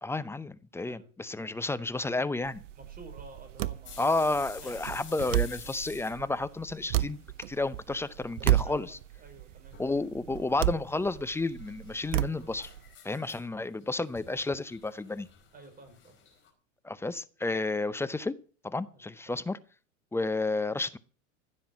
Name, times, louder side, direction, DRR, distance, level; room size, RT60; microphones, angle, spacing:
voice 1, 0.0-2.6 4.0-7.2 7.5-9.0 9.8-12.7 13.0-15.3 16.8-18.3 18.6-19.6 20.1-21.0, left 2 dB, 5° left, 0.6 m, -31 dB
sound 1, 2.4-12.9, right 15 dB, 70° right, 0.9 m, -33 dB
voice 2, 2.8-4.3 4.6-4.9 8.6-9.8 15.5-16.1 18.9-19.4, right 2 dB, 25° right, 5.5 m, -52 dB
sound 2, 3.8-7.7 7.9-8.6 8.9-9.0 9.7-10.1 11.1-16.5, left 8 dB, 30° left, 4.7 m, -51 dB
15.0 x 7.7 x 7.3 m
hypercardioid pair, 105°, 38 cm